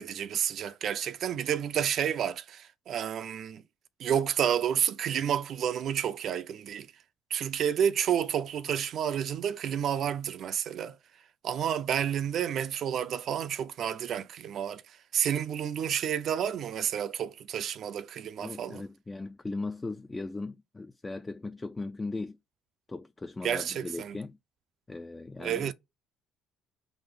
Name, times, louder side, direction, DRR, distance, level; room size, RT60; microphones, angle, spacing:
voice 1, 0.0-3.6 4.0-6.9 7.3-11.0 11.4-18.8 23.4-24.2 25.4-25.7, right 9 dB, 60° right, 0.4 m, -30 dB
voice 2, 18.4-22.4 22.9-24.4 24.9-25.7, left 3 dB, 20° left, 0.3 m, -38 dB
3.9 x 2.5 x 3.5 m
hypercardioid pair, 60°, 0 cm